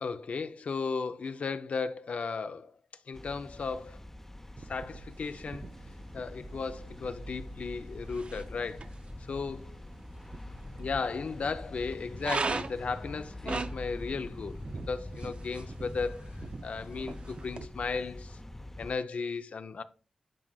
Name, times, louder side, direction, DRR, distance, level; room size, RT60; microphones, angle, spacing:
voice 1, 0.0-2.7 3.1-4.0 4.7-5.7 6.1-8.9 9.3-9.7 10.8-16.3 16.6-18.4 18.8-19.8, left 4 dB, 65° left, 0.6 m, -35 dB
sound 1, 3.1-18.9, left 1 dB, 15° left, 0.7 m, -44 dB
sound 2, 4.6-17.7, right 4 dB, 50° right, 0.4 m, -41 dB
11.0 x 4.8 x 2.3 m
cardioid pair, 50°, 2 cm